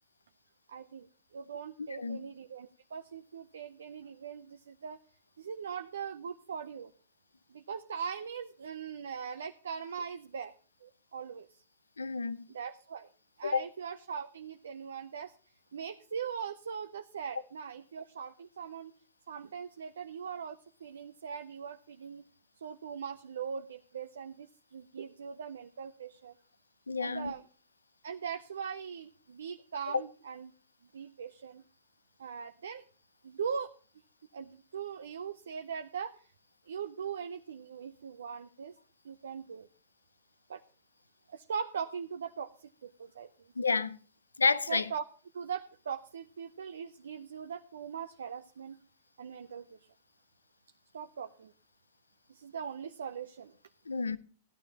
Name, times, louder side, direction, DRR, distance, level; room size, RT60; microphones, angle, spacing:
voice 1, 0.7-1.1 1.3-5.0 5.4-6.9 7.5-10.5 10.8-11.6 12.5-13.1 13.4-15.3 15.7-18.9 19.3-22.2 22.6-26.4 27.0-27.4 28.0-30.5 30.9-31.6 32.2-32.8 33.2-33.7 34.3-36.3 36.7-38.8 39.0-39.7 40.5-40.6 41.3-43.5 44.7-45.0 45.3-48.8 49.2-49.9 50.9-51.5 52.3-53.5, right 7 dB, 70° right, 0.6 m, -40 dB
voice 2, 12.0-12.4 13.4-13.6 26.9-27.3 29.9-30.0 43.6-44.0 44.4-44.9 53.9-54.2, left 4 dB, 85° left, 0.5 m, -30 dB
16.0 x 11.5 x 2.9 m
figure-of-eight pair, 100°, 0 cm